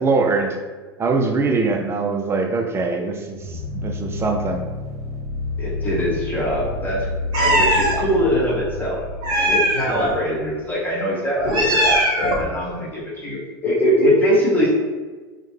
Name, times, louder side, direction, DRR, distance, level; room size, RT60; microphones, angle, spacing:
voice 1, 0.0-0.6 1.0-4.6 9.8-10.2, right 4 dB, 20° right, 3 dB, 0.4 m, -22 dB
sound 1, 3.4-10.6, left 3 dB, 70° right, 0.7 m, -30 dB
voice 2, 5.6-7.1 7.3-9.0 9.4-14.7, equal, 15° left, -6 dB, 1.3 m, -22 dB
Meow, 7.3-8.0 9.2-10.1 11.4-12.5, right 1 dB, 40° right, 1.1 m, -19 dB
3.2 x 2.2 x 3.2 m, 1.4 s
hypercardioid pair, 95°, 13 cm